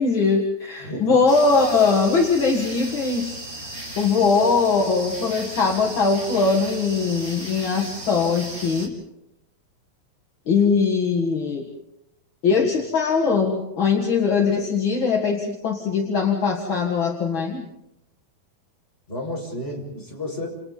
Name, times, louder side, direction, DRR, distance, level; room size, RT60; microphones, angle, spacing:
voice 1, 0.0-3.7 4.0-8.9 10.5-11.6 12.4-17.6, left 4 dB, 45° left, 1 dB, 1.9 m, -21 dB
voice 2, 0.8-1.2 12.5-12.6 19.1-20.5, left 1 dB, 15° left, -1 dB, 6.5 m, -32 dB
sound 1, 1.3-8.9, right 1 dB, 20° right, 3.4 m, -36 dB
29.5 x 29.0 x 4.1 m, 0.87 s
omnidirectional pair, 4.2 m